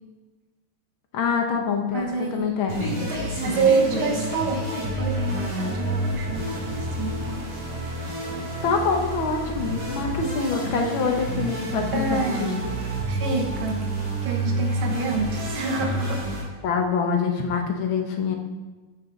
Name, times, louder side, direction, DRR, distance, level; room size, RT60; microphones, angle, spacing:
voice 1, 1.1-3.0 3.5-3.6 3.9-4.0 8.6-12.5 16.6-18.4, left 5 dB, 80° left, 3 dB, 1.9 m, -25 dB
voice 2, 1.9-2.5 3.1-7.5 11.9-12.5 13.1-13.9 14.2-16.2, right 4 dB, 90° right, 3 dB, 2.0 m, -27 dB
Beat To Bass Clip, 2.7-16.4, right 1 dB, 45° right, 2.7 m, -29 dB
9.4 x 8.1 x 3.9 m, 1.3 s
omnidirectional pair, 2.2 m